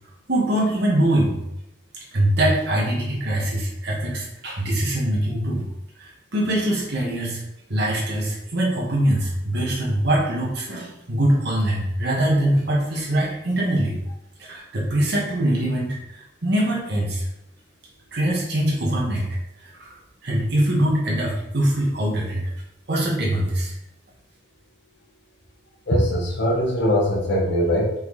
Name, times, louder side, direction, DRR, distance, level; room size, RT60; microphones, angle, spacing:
voice 1, 0.3-1.4 2.1-5.6 6.0-7.4 7.7-14.0 14.4-17.3 18.1-19.9 20.2-22.4 22.9-23.7, right 1 dB, 65° right, -4 dB, 1.6 m, -23 dB
voice 2, 25.9-27.9, equal, 65° left, -3 dB, 1.3 m, -21 dB
5.4 x 4.5 x 4.1 m, 0.83 s
head